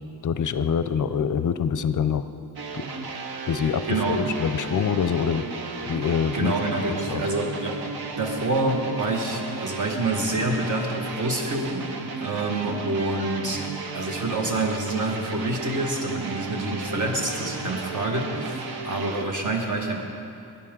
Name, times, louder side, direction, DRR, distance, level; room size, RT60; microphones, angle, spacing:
voice 1, 0.2-2.2 2.7-2.9 3.5-3.8 4.1-5.5 5.9-6.5 6.9-7.2, left 7 dB, 55° left, 12 dB, 0.5 m, -25 dB
sound 1, 2.6-19.3, right 4 dB, 70° right, 0.9 m, -34 dB
voice 2, 3.9-4.2 6.3-7.9 8.2-13.6 13.9-20.0, right 2 dB, 50° right, 1 dB, 1.5 m, -27 dB
17.0 x 10.5 x 3.7 m, 2.6 s
wide cardioid pair, 175°, 39 cm